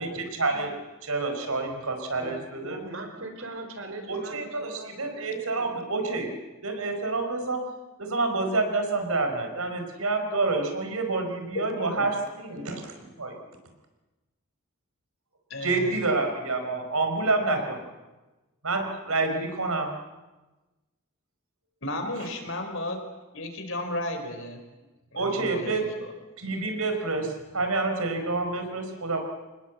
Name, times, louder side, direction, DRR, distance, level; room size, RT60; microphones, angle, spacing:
voice 1, 0.0-2.8 4.1-6.4 6.6-7.6 8.0-12.8 13.2-13.3 15.6-17.8 18.6-19.9 22.2-22.3 25.1-26.0 26.4-29.2, right 3 dB, 85° right, 5 dB, 4.9 m, -28 dB
voice 2, 2.6-5.4, right 2 dB, 65° right, 5 dB, 4.7 m, -40 dB
voice 3, 11.5-12.1 15.5-16.0 21.8-23.0 23.3-24.6 25.1-26.1, left 1 dB, 65° left, 6 dB, 4.4 m, -34 dB
26.0 x 20.0 x 8.3 m, 1.1 s
head